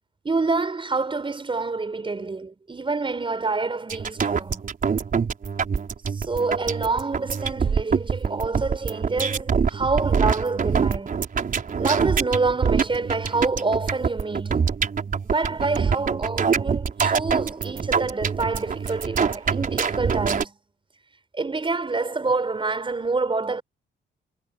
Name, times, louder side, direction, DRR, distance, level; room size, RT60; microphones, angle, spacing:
voice 1, 0.2-4.7 6.1-11.2 11.8-14.7 15.2-20.6 21.3-23.6, right 3 dB, 25° right, 5.9 m, -27 dB
sound 1, 3.9-20.4, right 6 dB, 45° right, 4.3 m, -25 dB
cardioid pair, 90°, 20 cm